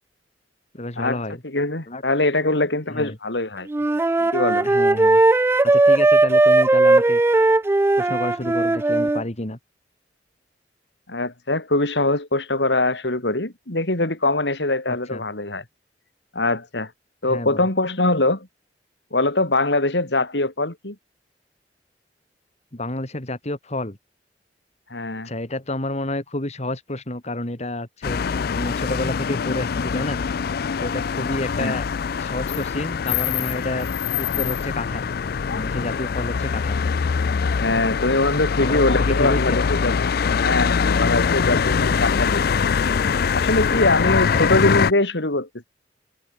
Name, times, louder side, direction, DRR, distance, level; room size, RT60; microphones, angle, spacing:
voice 1, 0.7-1.4 1.9-2.0 2.4-3.2 4.2-4.3 4.6-5.2 5.6-7.2 8.0-9.6 14.9-15.2 17.3-17.7 22.7-24.0 25.2-28.2 28.6-30.2 30.8-31.8 32.2-33.9 34.2-35.1 35.5-36.8 38.6-39.6 43.8-44.5, left 1 dB, 40° left, 3.0 m, -30 dB
voice 2, 1.4-3.7 4.3-4.7 11.1-15.6 16.3-16.9 17.2-18.5 19.1-21.0 24.9-25.3 31.6-31.7 37.5-39.9 40.4-42.5 43.3-45.5, left 2 dB, 75° left, 4.0 m, -22 dB
Wind instrument woodwind instrument, 3.7-9.2, right 2 dB, 15° right, 0.3 m, -17 dB
sound 1, 28.0-44.9, left 6 dB, 60° left, 0.4 m, -23 dB
head